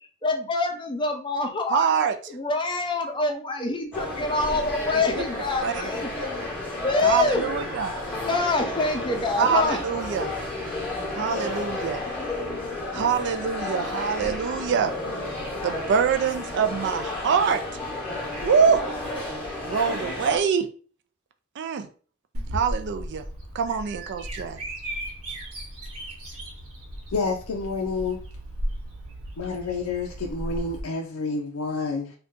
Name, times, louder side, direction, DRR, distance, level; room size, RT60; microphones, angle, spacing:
voice 1, 0.2-1.9 2.3-6.3 6.8-7.5 8.2-9.8, left 3 dB, 20° left, 3 dB, 0.5 m, -26 dB
voice 2, 1.7-2.2 4.9-5.0 5.6-5.8 7.0-7.9 9.4-10.3 11.2-12.0 12.9-14.9 15.6-17.6 18.4-18.8 19.7-20.7 21.6-21.9 22.5-23.2 23.5-24.6, right 6 dB, 55° right, 8 dB, 0.3 m, -24 dB
sound 1, 3.9-20.4, left 2 dB, 5° left, 0.9 m, -32 dB
Bird vocalization bird call bird song, 22.3-30.8, equal, 80° right, 1.0 m, -35 dB
voice 3, 27.1-28.2 29.4-32.1, left 4 dB, 80° left, 0 dB, 0.5 m, -29 dB
2.6 x 2.3 x 3.6 m, 0.40 s
head